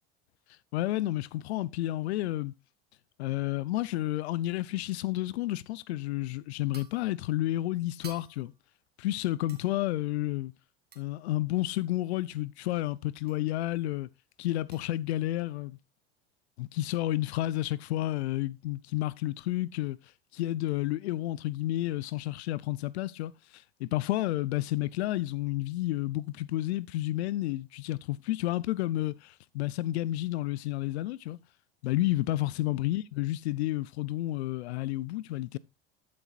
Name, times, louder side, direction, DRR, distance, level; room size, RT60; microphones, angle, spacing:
voice 1, 0.7-2.5 3.2-8.5 9.0-10.5 11.0-14.1 14.4-15.8 16.6-20.0 20.3-31.4 31.8-35.6, left 15 dB, 80° left, 0.6 m, -31 dB
sound 1, 5.8-6.0 6.7-7.2 8.0-8.6 9.5-9.9 10.9-11.2 13.3-13.5 14.7-15.0, right 6 dB, 30° right, 2.6 m, -52 dB
12.5 x 7.5 x 2.5 m
hypercardioid pair, 90°, 32 cm